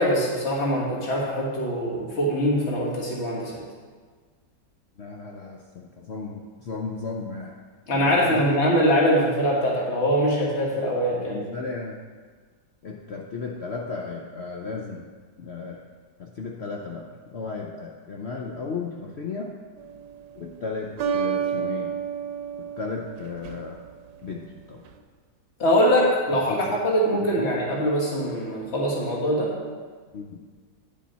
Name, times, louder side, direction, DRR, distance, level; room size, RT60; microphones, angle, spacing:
voice 1, 0.0-3.5 7.9-11.4 25.6-29.5, equal, 40° left, -3 dB, 1.8 m, -23 dB
voice 2, 5.0-7.5 7.9-8.6 10.7-10.8 11.1-12.0 12.8-15.1 15.4-15.8 16.2-19.5 20.4-22.0 22.6-23.8 24.2-24.8 26.3-26.8 27.1-27.5 30.1-30.5, left 4 dB, 70° left, 0 dB, 0.6 m, -35 dB
sound 1, 19.8-20.3 21.0-23.9, right 8 dB, 85° right, 1.3 m, -30 dB
9.8 x 7.0 x 4.1 m, 1.5 s
omnidirectional pair, 1.9 m